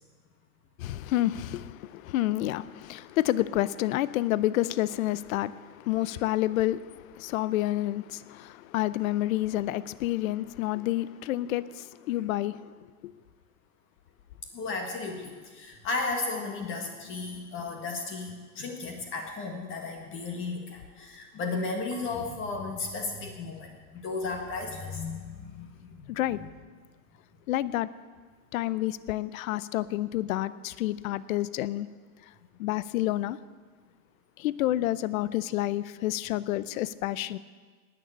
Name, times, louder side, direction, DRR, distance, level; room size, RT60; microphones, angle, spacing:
voice 1, 0.8-12.7 13.0-13.1 26.1-26.4 27.5-27.9 28.5-31.9 32.6-33.4 34.4-37.4, left 15 dB, 65° left, 0.7 m, -29 dB
voice 2, 14.5-26.1 26.4-26.5, left 3 dB, 25° left, 1.6 m, -34 dB
Marimba xylophone / Wood, 21.9-24.8, left 2 dB, 55° right, 1.8 m, -55 dB
19.0 x 6.8 x 8.7 m
hypercardioid pair, 140°, 45 cm